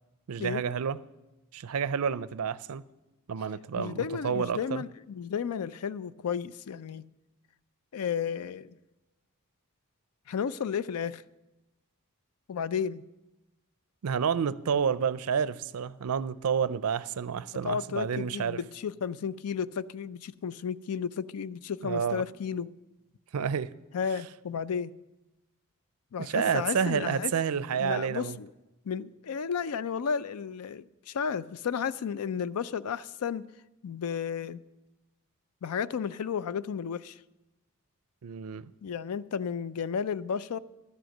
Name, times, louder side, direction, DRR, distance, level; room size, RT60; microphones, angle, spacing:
voice 1, 0.3-1.0 1.5-2.8 3.3-4.8 14.0-18.6 21.8-22.2 23.3-23.7 26.2-28.4 38.2-38.7, right 7 dB, 75° right, 0.4 m, -29 dB
voice 2, 3.8-7.0 7.9-8.7 10.3-11.2 12.5-13.0 17.6-22.7 23.9-24.9 26.1-27.3 27.8-28.5 28.9-33.5 33.8-34.6 35.6-37.2 38.8-40.6, left 7 dB, 80° left, 0.4 m, -33 dB
12.0 x 7.8 x 6.5 m
head